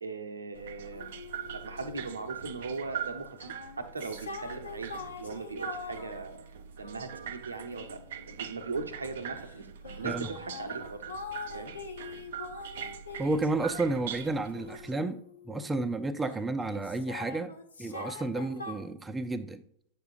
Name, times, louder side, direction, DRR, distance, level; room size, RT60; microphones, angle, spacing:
voice 1, 0.0-1.2 1.5-6.3 6.8-9.7 10.0-11.0 11.5-11.7 18.3-18.5, right 4 dB, 75° right, 0.8 m, -39 dB
sound 1, 0.6-14.9, right 8 dB, 60° right, 0.5 m, -42 dB
sound 2, 0.9-2.6 3.2-8.9 9.4-16.4 16.7-18.7, left 4 dB, 75° left, 1.0 m, -44 dB
voice 2, 13.2-17.5 17.8-19.6, right 2 dB, 10° right, 0.5 m, -31 dB
9.3 x 6.7 x 2.5 m
figure-of-eight pair, 90°, 0 cm